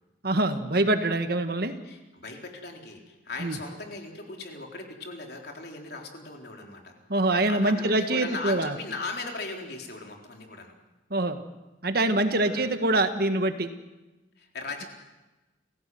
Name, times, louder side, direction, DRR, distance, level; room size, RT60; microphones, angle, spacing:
voice 1, 0.2-1.7 3.4-3.6 7.1-8.7 11.1-11.4 11.8-13.7, right 2 dB, 50° right, 8 dB, 1.7 m, -24 dB
voice 2, 1.8-6.9 7.2-10.8 12.3-12.7 14.4-14.9, left 3 dB, 55° left, 2 dB, 4.0 m, -38 dB
29.5 x 17.0 x 7.8 m, 1.1 s
head